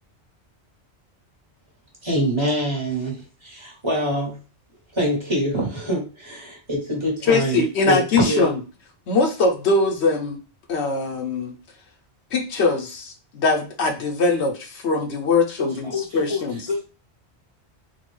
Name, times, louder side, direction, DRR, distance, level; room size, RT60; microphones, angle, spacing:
voice 1, 2.0-4.4 4.9-8.5, right 1 dB, 25° right, -3 dB, 1.2 m, -25 dB
voice 2, 7.3-8.6 9.1-10.4 10.7-11.5 12.3-15.8 16.1-16.6, left 3 dB, 70° left, 4 dB, 0.9 m, -21 dB
voice 3, 15.6-16.8, left 4 dB, 35° left, -3 dB, 0.7 m, -28 dB
3.7 x 2.3 x 3.1 m, 0.31 s
omnidirectional pair, 1.2 m